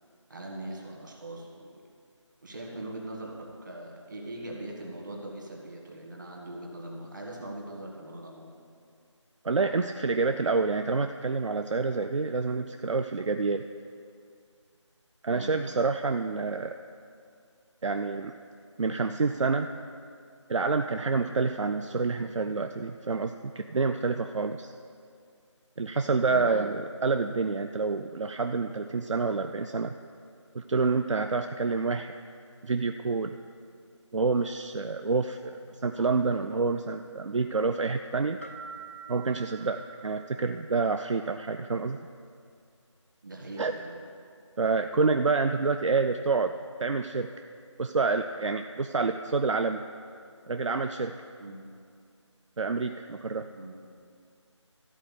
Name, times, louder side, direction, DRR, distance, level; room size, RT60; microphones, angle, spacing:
voice 1, 0.3-1.7 2.4-8.6 15.3-15.6 26.2-26.5 43.2-44.0 51.4-51.6 53.5-53.8, right 1 dB, 40° right, -1 dB, 1.6 m, -41 dB
voice 2, 9.4-13.6 15.2-16.8 17.8-18.3 18.8-19.7 20.5-24.7 25.8-30.0 30.5-32.1 32.6-33.3 34.1-38.4 39.1-42.0 43.6-43.7 44.6-47.3 47.8-49.8 50.5-51.1 52.6-53.5, right 4 dB, 75° right, 7 dB, 0.5 m, -28 dB
sound 1, 38.4-41.1, right 6 dB, 25° left, 0.5 m, -46 dB
13.5 x 4.5 x 8.2 m, 2.3 s
figure-of-eight pair, 175°, 16 cm